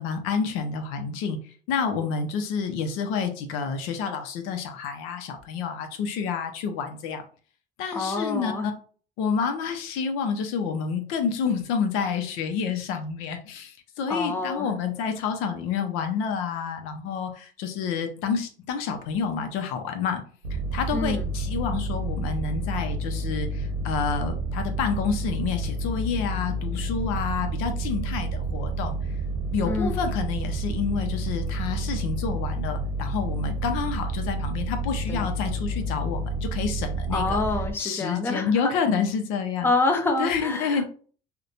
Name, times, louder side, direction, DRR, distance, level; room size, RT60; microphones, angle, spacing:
voice 1, 0.0-1.4 1.7-7.2 7.8-8.7 9.2-20.2 20.7-29.0 29.5-37.4 37.8-39.7 40.2-40.8, left 6 dB, 80° left, 6 dB, 0.6 m, -29 dB
voice 2, 7.9-8.7 14.1-14.7 20.9-21.3 29.6-30.1 35.1-35.3 37.1-38.7 39.6-40.8, left 3 dB, 10° left, 5 dB, 0.4 m, -27 dB
sound 1, 20.4-37.7, right 2 dB, 85° right, 0.9 m, -30 dB
2.8 x 2.1 x 2.5 m, 0.42 s
supercardioid pair, 100°, 21 cm